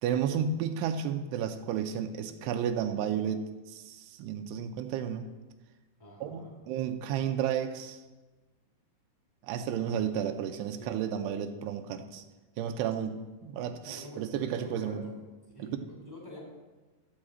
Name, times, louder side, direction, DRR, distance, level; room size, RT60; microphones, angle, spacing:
voice 1, 0.0-5.3 6.2-8.0 9.4-12.2 12.6-15.0 15.6-15.7, right 8 dB, 90° right, 6 dB, 2.8 m, -32 dB
voice 2, 6.0-6.6 10.7-11.0 13.8-15.1 15.5-16.4, equal, 5° left, -3 dB, 1.9 m, -46 dB
13.0 x 4.8 x 7.5 m, 1.2 s
omnidirectional pair, 4.7 m